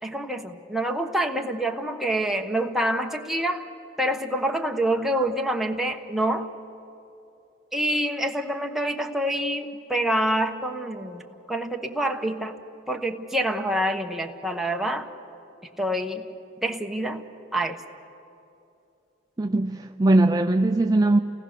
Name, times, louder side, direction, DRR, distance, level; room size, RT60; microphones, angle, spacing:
voice 1, 0.0-3.6 4.0-6.5 7.7-12.6 12.9-15.1 15.8-16.3 16.6-17.2 17.5-17.8, right 1 dB, ahead, 2 dB, 1.1 m, -26 dB
voice 2, 19.4-21.2, right 2 dB, 20° right, 6 dB, 0.5 m, -20 dB
29.0 x 18.5 x 6.7 m, 2.7 s
head